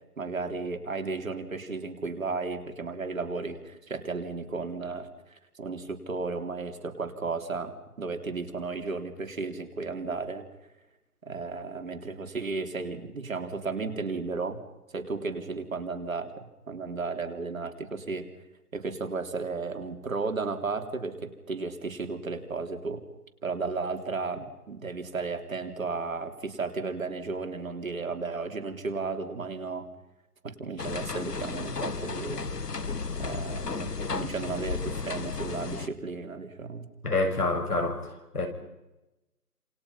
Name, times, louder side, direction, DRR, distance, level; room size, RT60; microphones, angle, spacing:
voice 1, 0.2-10.4 11.2-14.6 14.9-18.3 18.7-23.0 23.4-29.9 30.4-32.4 33.1-36.9, right 4 dB, 55° right, 6 dB, 3.6 m, -34 dB
sound 1, 30.8-35.9, left 4 dB, 85° left, 1.9 m, -33 dB
voice 2, 37.0-38.5, left 2 dB, 70° left, 6 dB, 7.1 m, -27 dB
28.5 x 28.0 x 5.7 m, 0.96 s
figure-of-eight pair, 160°, 47 cm